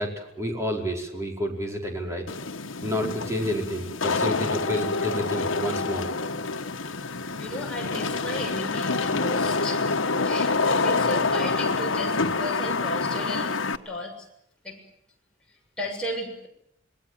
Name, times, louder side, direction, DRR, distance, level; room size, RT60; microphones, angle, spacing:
voice 1, 0.0-2.3 2.8-6.1, equal, 15° right, 1 dB, 4.8 m, -29 dB
Wind / Rain, 2.3-13.8, left 3 dB, 90° left, 1.2 m, -27 dB
voice 2, 7.3-13.5 13.9-14.3 14.6-14.8 15.8-16.5, left 1 dB, 5° left, -1 dB, 7.0 m, -34 dB
27.0 x 21.0 x 7.6 m, 0.76 s
head